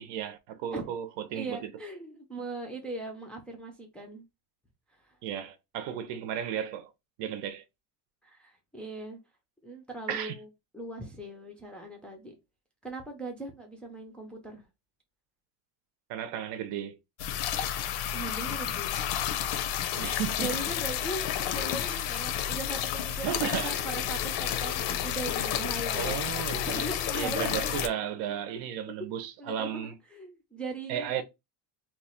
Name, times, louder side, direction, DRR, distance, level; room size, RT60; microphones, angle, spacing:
voice 1, 0.0-1.6 5.2-6.9 7.2-7.6 10.1-10.4 16.1-17.0 19.9-20.5 23.2-23.8 25.9-29.9 30.9-31.2, right 9 dB, 80° right, 0.8 m, -34 dB
voice 2, 1.3-4.2 5.0-5.2 8.2-9.2 9.6-10.5 10.7-12.3 12.8-14.6 18.1-19.0 20.1-23.4 23.6-26.2 26.7-27.9 29.4-31.2, right 2 dB, 5° left, 0.3 m, -39 dB
sound 1, 17.2-27.9, left 10 dB, 85° left, 0.6 m, -31 dB
2.9 x 2.3 x 4.2 m
cardioid pair, 175°, 41 cm